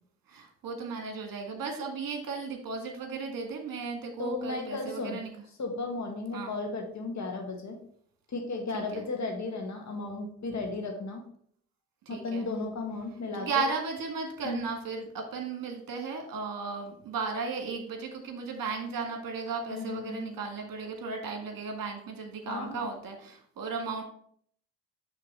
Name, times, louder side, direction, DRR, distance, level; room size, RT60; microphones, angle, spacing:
voice 1, 0.3-5.3 6.3-6.5 8.7-9.1 12.1-12.5 13.3-24.0, right 4 dB, 50° right, 4 dB, 1.8 m, -35 dB
voice 2, 4.2-5.2 5.6-7.8 8.3-11.2 12.1-13.7 14.4-14.7 19.7-20.3 22.5-22.9, left 3 dB, 40° left, 3 dB, 1.8 m, -35 dB
5.8 x 3.6 x 5.4 m, 0.62 s
hypercardioid pair, 60°, 42 cm